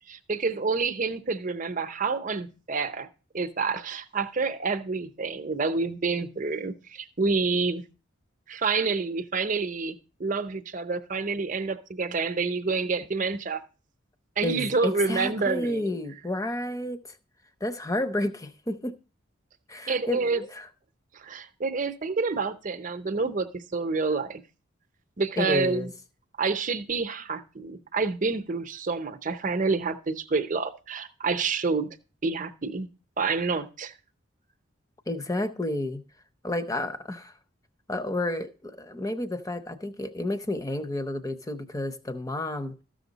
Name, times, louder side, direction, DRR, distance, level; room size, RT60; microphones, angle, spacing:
voice 1, 0.1-3.1 3.3-7.8 8.5-13.6 14.4-15.9 19.9-20.4 21.1-24.4 25.2-25.9 26.4-31.9 32.2-32.9 33.2-33.9, right 4 dB, 40° right, 0.7 m, -28 dB
voice 2, 14.4-17.2 17.6-18.9 19.7-20.7 25.4-25.9 35.1-36.0 36.4-37.3 37.9-42.8, left 1 dB, 15° left, 0.6 m, -31 dB
14.0 x 6.3 x 3.9 m
head